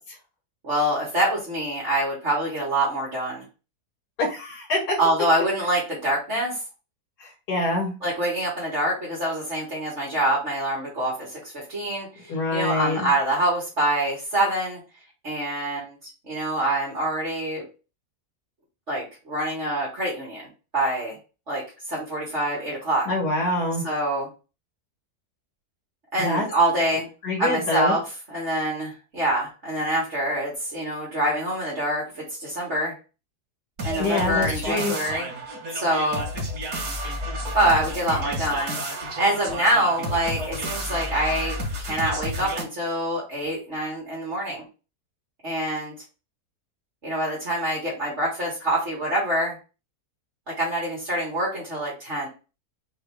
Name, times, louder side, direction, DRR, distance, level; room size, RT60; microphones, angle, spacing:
voice 1, 0.6-3.4 5.0-6.6 8.0-11.4 11.7-12.1 12.5-14.8 15.2-16.0 16.3-17.7 18.9-20.5 20.7-21.1 21.5-23.1 23.8-24.3 26.1-27.1 27.4-28.0 28.3-32.9 33.8-35.3 35.7-36.3 37.5-44.6 45.4-45.9 47.0-49.6 50.6-52.3, right 1 dB, 45° right, -5 dB, 2.3 m, -25 dB
voice 2, 4.2-5.0 7.2-8.0 12.3-13.1 23.1-23.8 26.2-26.5 27.2-27.9 34.0-34.9, left 2 dB, 80° left, -2 dB, 2.2 m, -25 dB
sound 1, 33.8-42.6, equal, 80° right, 2.2 m, -31 dB
5.1 x 2.9 x 3.5 m, 0.31 s
omnidirectional pair, 1.7 m